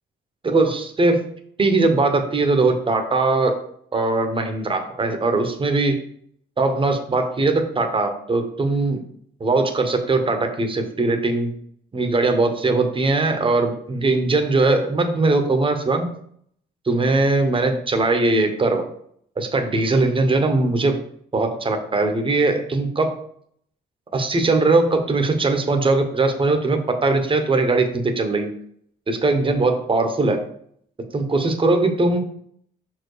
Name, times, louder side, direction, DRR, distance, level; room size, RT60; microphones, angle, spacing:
voice 1, 0.4-1.3 1.6-3.5 3.9-6.0 6.6-9.0 9.4-11.5 11.9-16.1 16.9-18.9 19.4-21.0 21.3-23.2 24.1-28.5 29.1-30.4 31.1-32.2, right 3 dB, 25° right, 5 dB, 1.2 m, -20 dB
5.8 x 4.6 x 4.9 m, 0.64 s
cardioid pair, 90°, 20 cm